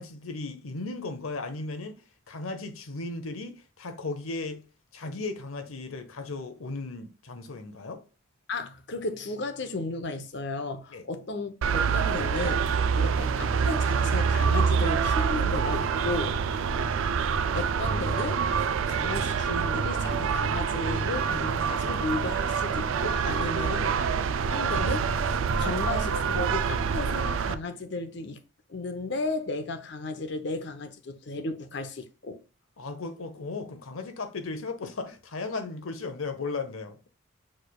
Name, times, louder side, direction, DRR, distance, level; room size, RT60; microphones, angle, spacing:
voice 1, 0.0-2.0 2.3-4.6 4.9-8.0 10.9-11.0 16.5-16.6 23.6-24.3 32.8-37.0, left 3 dB, 85° left, 0.8 m, -36 dB
voice 2, 8.5-16.4 17.5-24.0 24.3-28.4 28.7-32.4, left 3 dB, 55° left, 0.7 m, -34 dB
sound 1, 11.6-27.6, right 6 dB, 75° right, 0.4 m, -26 dB
6.3 x 3.3 x 2.3 m
head